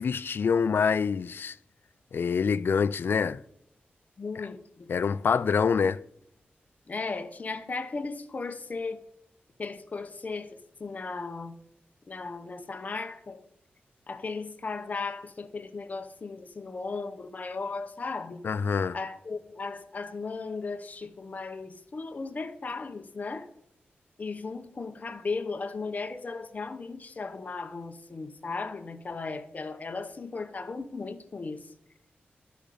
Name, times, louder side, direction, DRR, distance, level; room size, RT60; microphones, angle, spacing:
voice 1, 0.0-1.5 2.1-3.4 4.9-6.0 18.4-19.0, left 6 dB, 65° left, 0.4 m, -26 dB
voice 2, 4.2-4.9 6.9-9.1 9.6-11.6 12.1-13.4 14.1-18.5 18.9-23.5 24.2-31.7, left 4 dB, 40° left, 0.8 m, -36 dB
12.0 x 5.1 x 6.9 m
wide cardioid pair, 115°, 4 cm